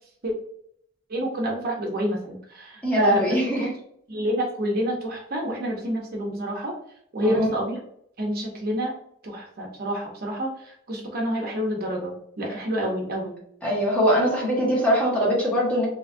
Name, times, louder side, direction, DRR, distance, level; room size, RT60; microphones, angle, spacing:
voice 1, 1.1-3.7 4.1-6.7 7.1-7.8 8.2-8.9 9.2-13.4, equal, 50° right, -1 dB, 0.7 m, -28 dB
voice 2, 2.8-3.7 7.2-7.5 13.6-15.9, equal, 5° left, -5 dB, 1.3 m, -22 dB
3.8 x 2.8 x 2.5 m, 0.69 s
head